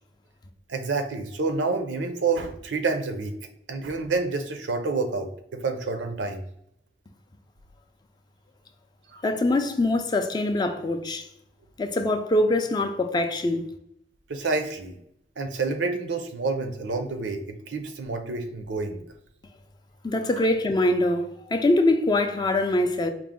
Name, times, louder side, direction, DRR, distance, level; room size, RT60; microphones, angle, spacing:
voice 1, 0.7-3.3 3.7-6.4 9.1-9.2 14.3-15.0 15.4-19.0, right 3 dB, 75° right, 0.6 m, -28 dB
voice 2, 9.2-11.3 11.8-13.6 20.0-23.1, left 2 dB, 25° left, 0.3 m, -23 dB
4.6 x 2.0 x 3.6 m
head